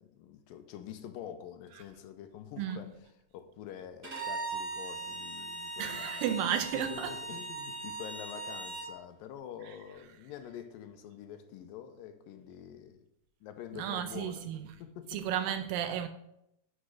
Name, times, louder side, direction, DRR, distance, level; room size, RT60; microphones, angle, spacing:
voice 1, 0.0-2.9 3.3-6.3 6.7-13.1 13.4-14.5 14.8-15.2, left 9 dB, 80° left, 2.4 m, -46 dB
Bowed string instrument, 4.0-8.9, right 3 dB, 20° right, 2.7 m, -39 dB
voice 2, 5.8-7.2 9.6-9.7 13.7-14.8 15.1-16.1, right 9 dB, 80° right, 2.2 m, -33 dB
8.4 x 4.9 x 6.3 m
omnidirectional pair, 4.2 m